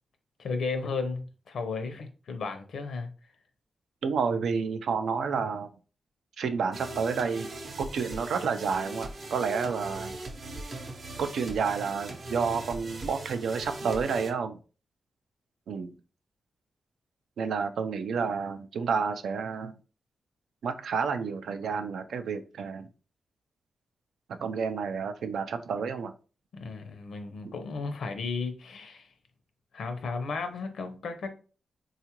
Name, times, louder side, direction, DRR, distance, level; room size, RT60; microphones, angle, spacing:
voice 1, 0.4-3.1 26.5-29.1 29.7-31.3, left 4 dB, 80° left, 0.5 m, -34 dB
voice 2, 4.0-5.7 6.4-7.5 7.8-10.1 11.2-14.6 15.7-16.0 17.4-19.7 20.6-22.9 24.3-26.1, right 5 dB, 85° right, 0.4 m, -30 dB
sound 1, 6.7-14.3, right 2 dB, 50° right, 0.6 m, -40 dB
3.7 x 2.4 x 2.9 m
wide cardioid pair, 110°, 0 cm